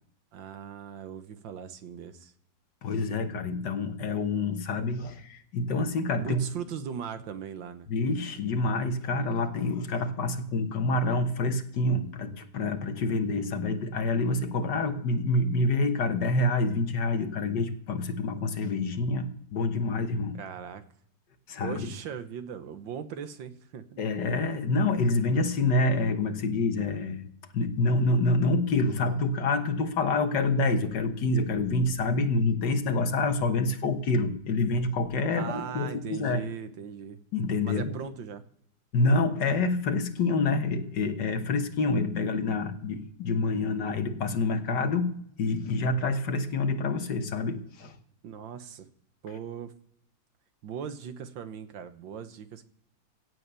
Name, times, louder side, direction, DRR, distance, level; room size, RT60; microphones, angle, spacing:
voice 1, 0.3-2.3 6.2-7.9 20.3-20.8 21.6-24.0 35.3-37.2 37.6-38.4 48.2-48.9 49.2-49.7 50.6-52.6, right 8 dB, 80° right, 10 dB, 1.8 m, -39 dB
voice 2, 2.8-6.4 7.9-20.4 21.5-21.9 24.0-27.3 27.5-36.4 37.3-38.0 38.9-45.1 45.4-47.9, left 3 dB, 65° left, 7 dB, 1.9 m, -27 dB
16.5 x 7.8 x 6.9 m, 0.72 s
omnidirectional pair, 2.0 m